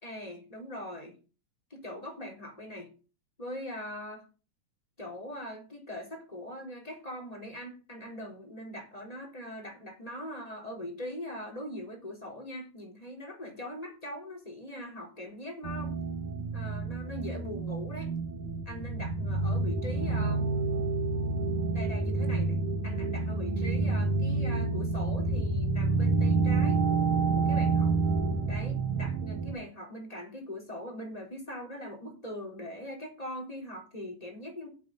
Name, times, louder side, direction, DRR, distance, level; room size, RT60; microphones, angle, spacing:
voice 1, 0.0-1.1 1.7-2.9 3.4-4.3 5.0-15.9 16.5-18.1 18.7-20.6 21.7-22.6 22.8-26.8 27.3-27.9 28.4-34.7, left 1 dB, 10° left, 0 dB, 3.7 m, -41 dB
sound 1, 15.6-29.5, right 3 dB, 85° right, 3.2 m, -28 dB
8.4 x 8.1 x 8.9 m, 0.35 s
omnidirectional pair, 3.5 m